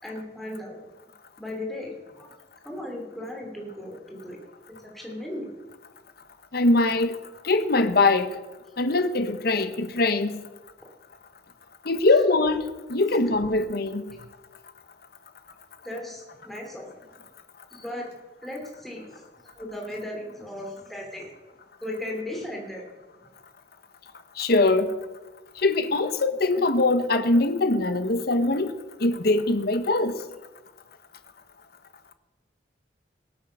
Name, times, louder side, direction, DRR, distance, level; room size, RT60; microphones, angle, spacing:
voice 1, 0.0-0.8 1.4-2.3 2.6-4.4 4.7-5.5 15.8-17.2 17.7-18.1 18.4-21.3 21.8-22.8, left 1 dB, ahead, 2.9 m, -36 dB
voice 2, 6.5-7.2 7.4-8.4 8.8-10.4 11.9-12.6 12.9-14.0 24.4-24.9 25.6-28.7 29.0-30.2, left 2 dB, 55° left, 1.0 m, -22 dB
18.0 x 9.1 x 6.0 m
head